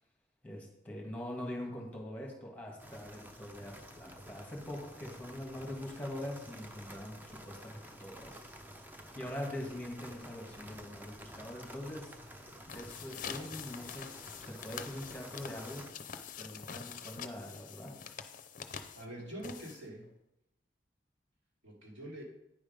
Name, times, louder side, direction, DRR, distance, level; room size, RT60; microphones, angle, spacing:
voice 1, 0.4-8.4 9.1-12.2 12.7-14.1 14.4-15.8 16.4-17.9, left 1 dB, 10° left, -1 dB, 1.7 m, -43 dB
sound 1, 2.8-15.9, equal, 10° right, 0.6 m, -51 dB
sound 2, 12.6-20.1, left 7 dB, 45° left, 0.6 m, -45 dB
voice 2, 18.9-20.1 21.6-22.2, right 1 dB, 90° right, -3 dB, 2.6 m, -45 dB
9.5 x 5.0 x 5.2 m, 0.88 s
head